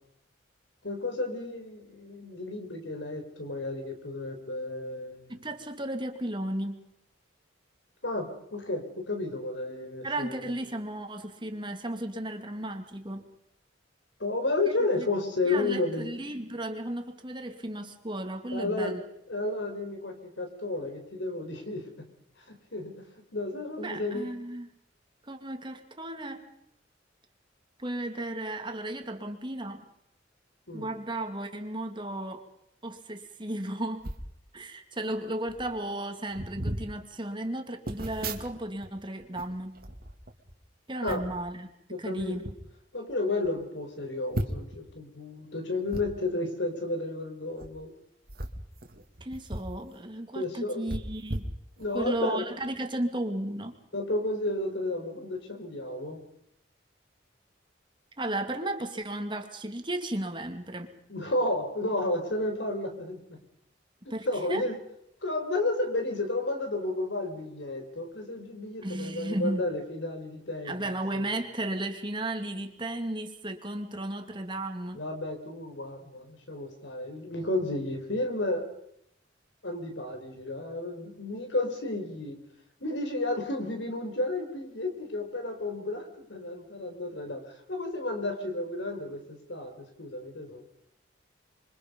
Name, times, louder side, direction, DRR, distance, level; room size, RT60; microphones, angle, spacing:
voice 1, 0.8-5.4 8.0-10.5 14.2-16.1 18.5-19.0 19.3-22.0 22.5-23.0 23.3-24.3 30.7-30.9 41.0-41.2 41.9-42.5 42.9-47.9 50.3-50.9 51.8-52.4 53.9-56.2 61.1-63.4 64.0-64.8 65.2-71.2 74.9-78.7 79.6-82.4 82.8-90.6, left 2 dB, 70° left, 5 dB, 4.8 m, -32 dB
voice 2, 5.3-6.8 10.0-13.2 15.0-15.1 15.4-19.0 23.8-24.7 25.2-26.4 27.8-29.8 30.7-32.5 32.8-34.1 34.5-39.7 40.9-41.7 42.0-42.4 49.2-51.4 51.9-53.7 58.2-60.9 64.1-64.6 68.8-69.6 70.6-75.0, right 1 dB, 25° right, 5 dB, 2.5 m, -34 dB
sound 1, 34.0-34.3 35.1-35.2 35.4-35.7 36.3-36.9 37.8-38.9 39.2-40.6 41.1-41.4 42.2-42.6 43.1-43.2 43.4-43.5 44.3-44.8 45.9-46.0 47.5-47.7 48.2-49.8 50.1-50.2 50.9-52.1 52.6-52.7, right 1 dB, 50° right, 2.4 m, -36 dB
27.5 x 24.0 x 5.4 m, 0.75 s
head